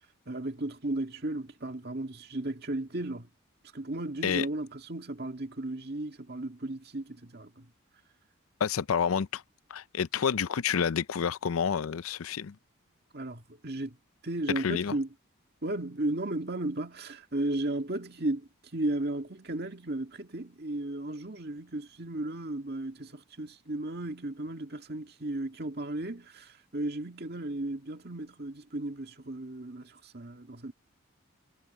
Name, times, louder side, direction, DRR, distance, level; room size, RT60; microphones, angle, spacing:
voice 1, 0.3-3.3 3.7-7.7 13.1-14.0 14.2-15.1 15.6-30.7, right 1 dB, 50° right, 2.1 m, -35 dB
voice 2, 8.6-9.4 9.7-12.5 14.6-14.9, left 7 dB, 90° left, 0.5 m, -29 dB
head